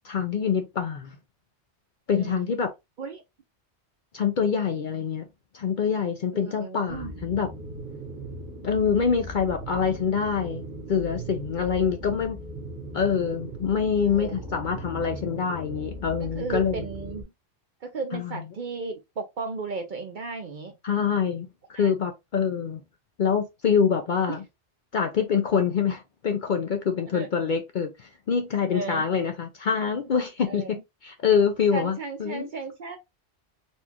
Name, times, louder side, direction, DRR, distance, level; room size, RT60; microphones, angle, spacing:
voice 1, 0.0-1.2 2.1-2.7 4.1-5.3 5.5-7.5 8.6-10.6 10.9-12.4 12.9-16.8 18.1-18.3 20.8-21.5 21.8-22.8 23.2-24.4 24.9-30.6 31.0-32.5, left 6 dB, 55° left, 0.6 m, -25 dB
voice 2, 2.1-2.5 3.0-3.2 6.3-7.1 14.0-14.4 16.4-17.3 17.8-20.7 21.7-21.9 24.3-24.4 27.1-27.3 28.7-29.0 30.4-30.8 31.7-33.0, right 4 dB, 55° right, 0.6 m, -35 dB
sound 1, 6.9-17.2, right 1 dB, 40° right, 1.1 m, -38 dB
4.3 x 2.3 x 2.8 m
omnidirectional pair, 1.2 m